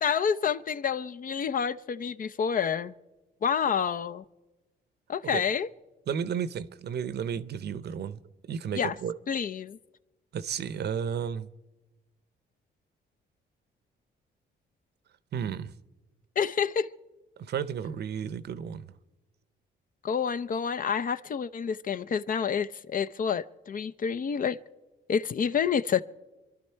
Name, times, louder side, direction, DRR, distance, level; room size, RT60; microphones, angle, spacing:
voice 1, 0.0-2.9 3.4-4.2 5.1-5.7 8.7-8.9 9.3-9.8 16.4-16.9 20.0-24.6 25.1-26.0, left 7 dB, 45° left, 0.6 m, -28 dB
voice 2, 6.1-8.2 8.5-9.2 10.3-11.5 15.3-15.7 17.4-18.9, right 8 dB, 55° right, 0.7 m, -33 dB
26.5 x 11.5 x 4.5 m
cardioid pair, 90°, 20 cm